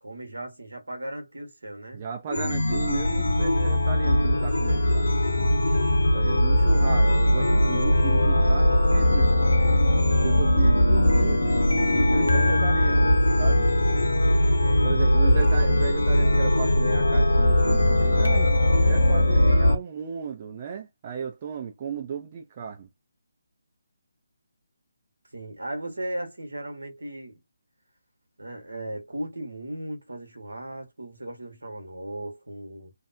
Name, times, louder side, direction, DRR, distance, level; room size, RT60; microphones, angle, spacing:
voice 1, 0.0-2.0 11.9-12.6 13.9-14.1 14.6-15.4 25.3-27.4 28.4-32.9, right 1 dB, 70° right, 1.1 m, -36 dB
voice 2, 1.9-5.2 6.1-9.5 10.2-13.7 14.8-18.5 18.9-22.9, right 7 dB, 30° right, 0.5 m, -35 dB
Chime, 2.3-19.7, left 1 dB, 70° left, 0.8 m, -20 dB
2.5 x 2.1 x 2.6 m
figure-of-eight pair, 145°, 0 cm